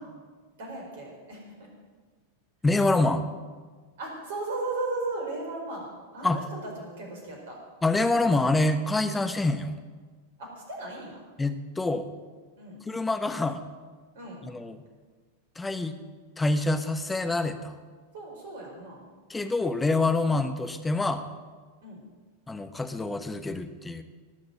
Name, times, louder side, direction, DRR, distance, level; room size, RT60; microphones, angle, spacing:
voice 1, 0.6-1.7 4.0-7.6 10.4-11.2 12.6-12.8 14.1-14.4 18.1-19.1 21.8-22.0, right 2 dB, 55° right, -1 dB, 4.9 m, -36 dB
voice 2, 2.6-3.2 6.2-6.4 7.8-9.8 11.4-12.1 12.8-13.6 14.4-14.8 15.6-15.9 16.4-17.8 19.3-21.2 22.5-24.0, left 2 dB, 10° left, 8 dB, 1.0 m, -26 dB
18.5 x 6.6 x 7.7 m, 1.4 s
figure-of-eight pair, 90°, 0 cm